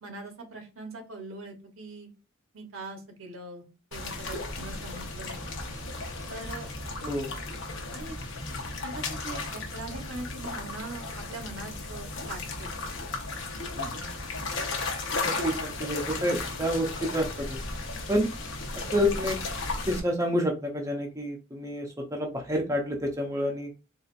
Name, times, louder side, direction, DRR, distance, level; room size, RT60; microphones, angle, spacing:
voice 1, 0.0-2.1 2.5-3.7 3.9-5.5 6.3-7.1 7.9-8.1 8.8-12.7, right 2 dB, 75° right, 4 dB, 1.0 m, -42 dB
sound 1, 3.9-20.0, left 3 dB, 60° left, 0.8 m, -35 dB
voice 2, 13.7-14.1 15.2-17.6 18.1-18.3 18.9-19.4 19.9-23.7, equal, 15° right, 1 dB, 0.5 m, -29 dB
4.0 x 2.4 x 2.4 m, 0.31 s
head